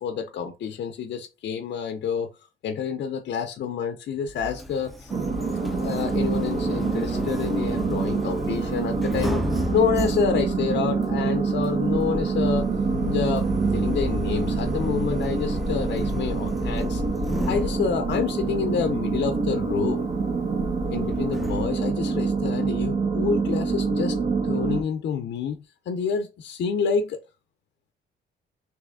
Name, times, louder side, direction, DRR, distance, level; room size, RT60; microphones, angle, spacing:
voice 1, 0.0-2.3 2.6-5.1 5.8-9.4 9.7-12.7 13.0-13.5 13.7-17.0 17.5-20.0 20.9-24.2 24.4-27.2, left 6 dB, 60° left, 0.5 m, -28 dB
Sliding door, 4.3-21.7, left 1 dB, ahead, 0.5 m, -33 dB
sound 1, 5.1-24.8, right 4 dB, 40° right, 0.8 m, -26 dB
3.2 x 2.9 x 3.5 m
cardioid pair, 90°, 20 cm